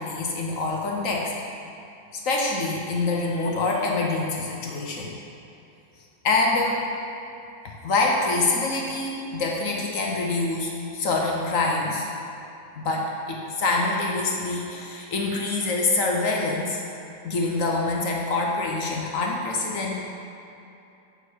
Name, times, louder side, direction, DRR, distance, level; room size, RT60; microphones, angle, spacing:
voice 1, 0.0-1.3 2.2-5.1 6.2-6.8 7.6-12.1 12.8-16.8 17.2-20.0, left 3 dB, 60° left, -1 dB, 1.0 m, -25 dB
9.0 x 4.2 x 4.5 m, 2.8 s
omnidirectional pair, 1.8 m